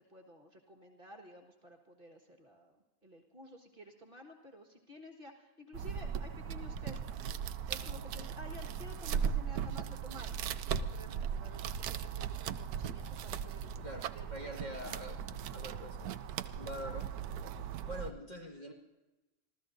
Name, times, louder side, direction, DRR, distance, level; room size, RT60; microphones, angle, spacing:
voice 1, 0.1-2.8 3.0-7.0 7.7-10.4 10.7-15.0 16.8-16.9, left 1 dB, 35° right, 2 dB, 1.8 m, -53 dB
sound 1, 5.7-18.1, right 7 dB, 90° right, 1.1 m, -38 dB
voice 2, 13.8-15.2 15.5-16.1 16.5-17.1 17.9-18.7, equal, 30° left, 0 dB, 1.9 m, -44 dB
26.5 x 15.0 x 2.6 m, 1.1 s
omnidirectional pair, 1.6 m